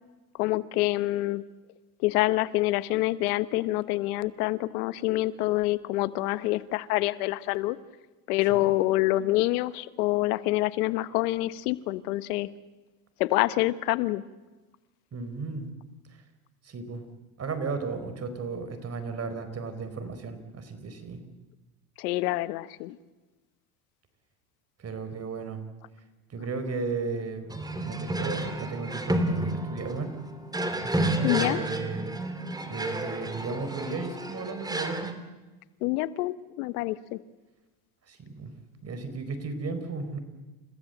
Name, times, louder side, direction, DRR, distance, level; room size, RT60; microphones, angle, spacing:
voice 1, 0.4-1.4 2.0-7.8 8.3-12.5 13.2-14.2 22.0-23.0 31.2-31.6 35.8-37.2, left 18 dB, 85° left, 15 dB, 1.2 m, -26 dB
voice 2, 15.1-15.7 16.6-17.0 17.4-21.2 24.8-25.6 26.3-27.5 27.8-30.1 30.8-32.2 32.7-35.1 38.1-38.5 38.8-40.2, right 4 dB, 35° right, 9 dB, 4.4 m, -35 dB
sound 1, 27.5-35.1, right 1 dB, 10° right, 2.6 m, -31 dB
29.5 x 16.0 x 8.0 m, 1.2 s
supercardioid pair, 105°, 44 cm